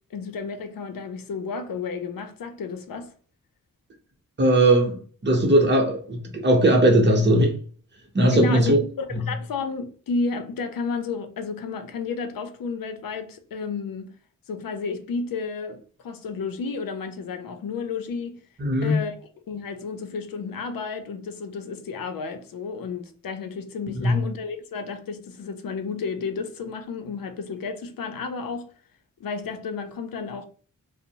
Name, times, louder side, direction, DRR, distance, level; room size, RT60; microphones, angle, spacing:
voice 1, 0.1-3.1 8.3-14.1 14.5-18.4 18.8-19.1 19.5-28.7 29.2-30.5, left 4 dB, 70° left, 0.5 m, -32 dB
voice 2, 4.4-7.6 8.1-8.8 9.1-9.3 18.6-19.1 24.0-24.2, right 1 dB, 30° right, 0.8 m, -19 dB
2.6 x 2.0 x 2.8 m
cardioid pair, 70°, 35 cm